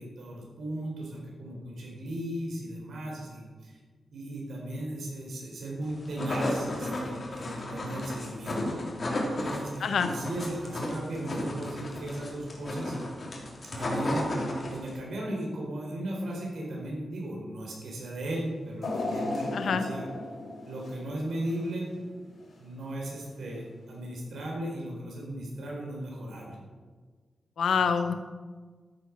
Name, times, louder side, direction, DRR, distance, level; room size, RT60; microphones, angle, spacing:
voice 1, 0.0-3.8 4.1-8.8 9.4-12.9 13.7-14.3 14.7-20.1 20.7-21.9 22.6-26.6, right 1 dB, 75° right, -3 dB, 4.1 m, -36 dB
sound 1, 5.9-15.0, left 1 dB, 40° left, 3.0 m, -33 dB
voice 2, 9.8-10.1 19.5-19.9 27.6-28.1, left 6 dB, 80° left, 8 dB, 1.0 m, -26 dB
sound 2, 18.8-22.0 22.4-22.5 23.6-23.7, left 2 dB, 60° left, 3.7 m, -35 dB
14.0 x 9.1 x 6.1 m, 1.5 s
wide cardioid pair, 150°, 0 cm